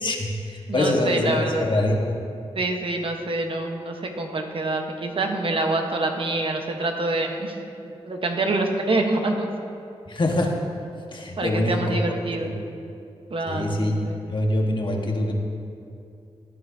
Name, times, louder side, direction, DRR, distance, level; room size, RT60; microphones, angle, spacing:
voice 1, 0.0-2.0 10.1-10.5 11.1-12.0 12.4-12.5 13.5-13.9 14.3-15.3, left 1 dB, 45° left, 1 dB, 1.6 m, -24 dB
voice 2, 0.7-1.6 2.5-7.6 8.0-9.5 11.4-12.5 13.3-14.2, right 2 dB, 55° right, 3 dB, 1.2 m, -26 dB
17.0 x 9.4 x 2.8 m, 2.5 s
cardioid pair, 55°, 11 cm